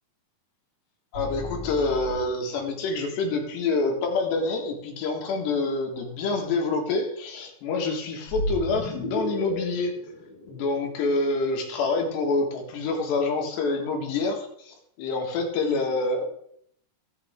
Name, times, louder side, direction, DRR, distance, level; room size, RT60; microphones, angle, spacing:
voice 1, 1.1-10.0 10.5-16.2, left 3 dB, 85° left, 2 dB, 4.0 m, -27 dB
sound 1, 1.1-2.7 8.3-11.4, left 1 dB, 35° left, 1.9 m, -33 dB
17.0 x 6.7 x 3.7 m, 0.70 s
omnidirectional pair, 4.7 m